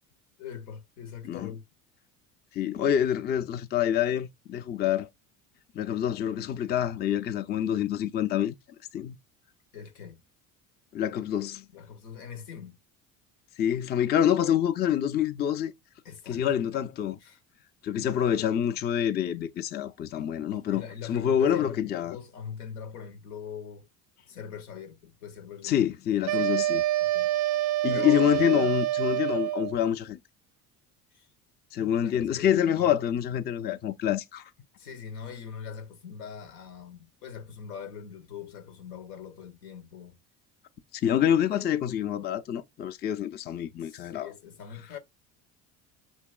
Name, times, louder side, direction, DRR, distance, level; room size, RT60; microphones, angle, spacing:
voice 1, 0.4-1.7 9.7-10.2 11.7-12.8 16.0-16.9 17.2-17.4 20.5-23.9 24.3-26.5 27.0-27.3 27.9-28.8 31.1-31.3 32.0-32.5 32.7-33.1 34.8-40.2 43.8-45.0, left 7 dB, 80° left, 0.8 m, -42 dB
voice 2, 2.5-5.1 5.7-8.5 8.9-9.2 10.9-11.7 13.6-15.7 16.3-17.2 17.8-22.2 25.6-26.8 27.8-30.2 31.7-34.5 41.0-44.3, left 10 dB, 25° left, 0.4 m, -26 dB
sound 1, 26.3-29.8, right 15 dB, 45° right, 0.4 m, -27 dB
6.1 x 2.8 x 2.2 m
hypercardioid pair, 70°, 45 cm